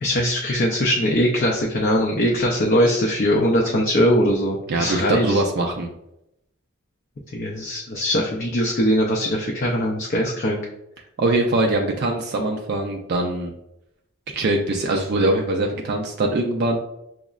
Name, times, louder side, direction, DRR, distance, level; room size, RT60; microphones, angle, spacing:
voice 1, 0.0-5.4 7.3-10.6, equal, 40° left, -1 dB, 0.4 m, -21 dB
voice 2, 4.7-5.9 11.2-13.5 14.3-16.8, right 2 dB, 50° right, 1 dB, 0.3 m, -22 dB
6.0 x 2.0 x 2.3 m, 0.85 s
head